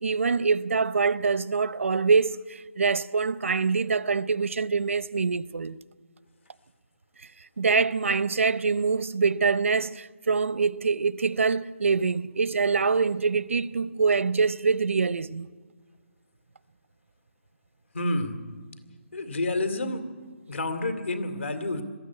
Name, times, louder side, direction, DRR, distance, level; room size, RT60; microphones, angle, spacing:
voice 1, 0.0-5.8 7.6-15.5, right 5 dB, 80° right, 0.7 m, -25 dB
voice 2, 17.9-18.4 19.1-20.0 20.5-21.8, left 2 dB, 70° left, 2.5 m, -29 dB
21.5 x 13.5 x 9.7 m
hypercardioid pair, 175°, 7 cm